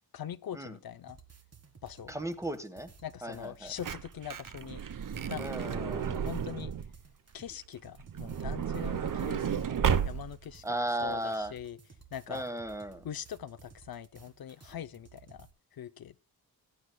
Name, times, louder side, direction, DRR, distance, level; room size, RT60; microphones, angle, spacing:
voice 1, 0.1-1.2 1.8-2.1 3.0-4.8 5.3-6.7 7.3-12.5 13.0-16.2, left 10 dB, 70° left, 0.6 m, -43 dB
sound 1, 1.1-15.5, right 6 dB, 40° right, 1.7 m, -57 dB
voice 2, 2.1-2.9 3.2-3.7 5.4-6.1 10.6-11.5 12.3-13.0, right 1 dB, 10° right, 1.3 m, -35 dB
Truck / Door, 3.4-7.0 8.0-10.5 11.2-11.3 11.5-11.7, right 8 dB, 60° right, 0.8 m, -32 dB
17.5 x 9.9 x 2.2 m
wide cardioid pair, 125°, 37 cm